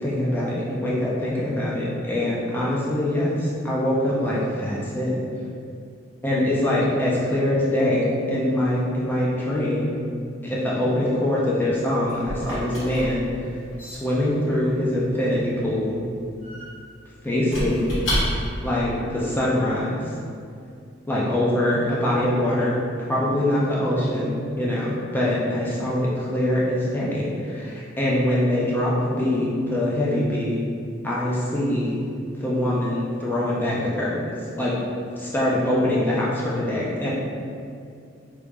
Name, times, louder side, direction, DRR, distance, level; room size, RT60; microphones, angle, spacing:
voice 1, 0.0-5.2 6.2-9.9 10.4-13.2 13.8-16.0 17.2-17.9 18.6-19.9 21.1-22.8 23.1-30.6 31.0-32.0 32.4-34.2 34.6-34.9 35.2-37.1, left 1 dB, 10° left, -6 dB, 0.4 m, -23 dB
Squeak / Wood, 11.6-18.7, equal, 70° left, 1.4 m, -32 dB
3.0 x 2.4 x 3.4 m, 2.4 s
head